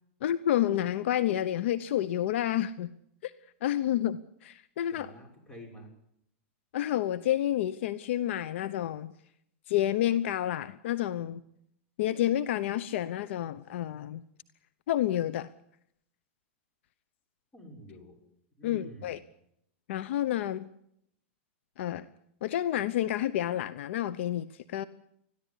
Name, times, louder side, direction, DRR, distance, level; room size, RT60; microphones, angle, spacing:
voice 1, 0.2-2.9 3.2-3.3 3.6-5.1 6.7-9.1 9.7-11.4 12.0-14.2 14.9-15.5 18.6-19.2 19.9-20.7 21.8-22.1 22.4-24.8, left 12 dB, 65° left, 16 dB, 0.9 m, -29 dB
voice 2, 4.9-5.9 17.5-18.2 18.6-19.2, equal, 15° left, 2 dB, 6.4 m, -48 dB
21.0 x 14.5 x 10.0 m, 0.74 s
supercardioid pair, 145°, 7 cm